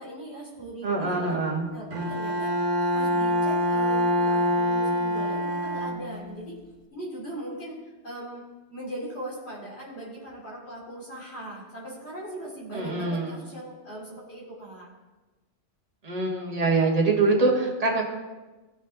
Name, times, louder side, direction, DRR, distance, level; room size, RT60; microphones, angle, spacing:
voice 1, 0.0-1.4 1.7-2.5 2.9-6.6 6.9-8.4 8.7-14.9, right 1 dB, 60° left, -5 dB, 3.1 m, -39 dB
voice 2, 0.8-1.6 12.7-13.3 16.0-18.0, right 3 dB, 30° right, 0 dB, 1.4 m, -24 dB
Bowed string instrument, 1.9-6.4, equal, 90° right, 1.5 m, -25 dB
15.0 x 5.3 x 3.8 m, 1.2 s
omnidirectional pair, 1.2 m